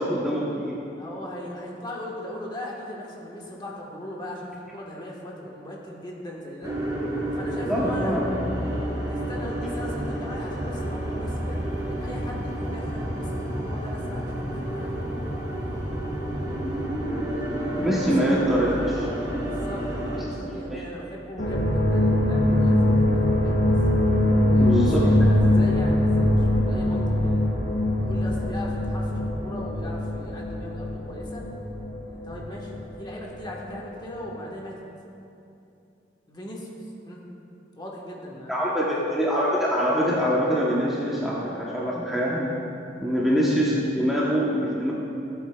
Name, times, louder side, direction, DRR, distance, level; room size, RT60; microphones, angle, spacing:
voice 1, 0.0-0.8 7.6-8.2 17.8-19.0 20.1-20.8 24.6-25.1 38.5-42.6 43.0-44.9, equal, ahead, -6 dB, 0.8 m, -24 dB
voice 2, 1.0-6.7 7.3-8.1 9.0-11.6 11.9-15.2 16.3-16.8 18.0-23.7 24.5-27.5 28.0-31.4 32.1-34.8 36.3-36.7 37.1-37.2 37.8-39.1 43.2-43.4, left 1 dB, 25° left, -3 dB, 1.2 m, -39 dB
sound 1, 6.6-20.2, right 1 dB, 20° right, 2.1 m, -30 dB
sound 2, 21.4-33.5 33.8-34.2, left 1 dB, 90° left, 1.5 m, -22 dB
14.5 x 8.2 x 2.3 m, 2.8 s
head